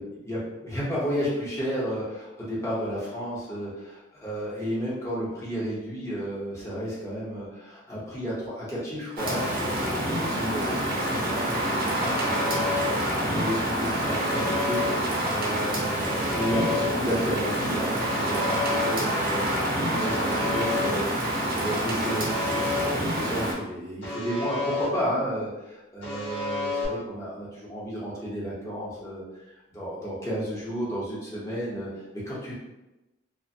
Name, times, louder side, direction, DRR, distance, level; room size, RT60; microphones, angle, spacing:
voice 1, 0.6-29.2 29.7-31.9 32.3-32.5, equal, 15° left, -8 dB, 0.7 m, -32 dB
Rain, 9.2-23.5, right 1 dB, 50° right, 0.5 m, -27 dB
Alarm, 12.0-12.9 14.0-14.9 16.0-16.9 18.0-18.9 20.0-20.9 22.0-22.9 24.0-24.9 26.0-26.9, left 3 dB, 70° left, 0.9 m, -31 dB
2.5 x 2.1 x 2.6 m, 1.0 s
head